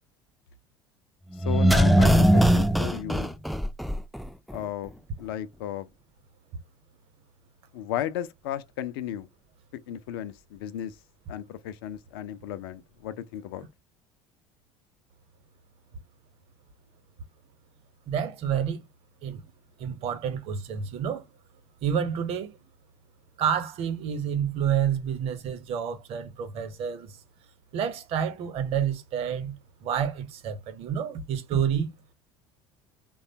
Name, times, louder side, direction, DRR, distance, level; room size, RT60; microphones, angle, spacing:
voice 1, 1.3-3.4 4.5-4.9 5.2-5.9 7.7-9.3 9.9-11.0 11.3-13.7, left 11 dB, 65° left, 0.5 m, -34 dB
sound 1, 1.4-4.3 4.5-4.6, right 1 dB, ahead, 0.4 m, -20 dB
voice 2, 18.1-18.9 19.2-19.4 19.8-21.2 21.8-22.5 23.4-27.2 27.7-31.9, right 8 dB, 50° right, 0.9 m, -29 dB
3.2 x 2.3 x 2.8 m
figure-of-eight pair, 70°, 13 cm